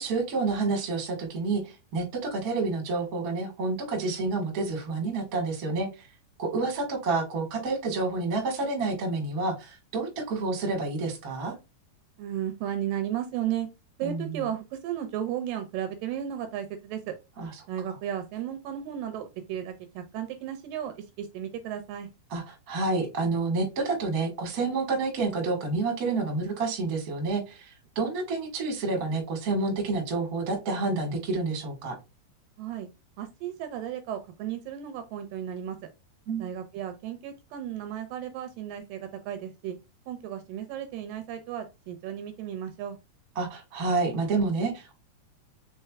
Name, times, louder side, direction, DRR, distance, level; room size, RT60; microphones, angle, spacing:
voice 1, 0.0-5.9 6.4-11.5 14.0-14.2 17.4-17.5 22.3-27.7 27.9-31.9 36.3-36.4 43.3-45.0, right 3 dB, 45° right, 2 dB, 1.1 m, -29 dB
voice 2, 12.2-13.7 14.0-17.1 17.7-22.1 32.6-32.9 33.2-35.8 36.4-39.8 40.1-43.0, right 10 dB, 80° right, 7 dB, 2.2 m, -34 dB
5.6 x 3.7 x 2.3 m, 0.25 s
omnidirectional pair, 4.3 m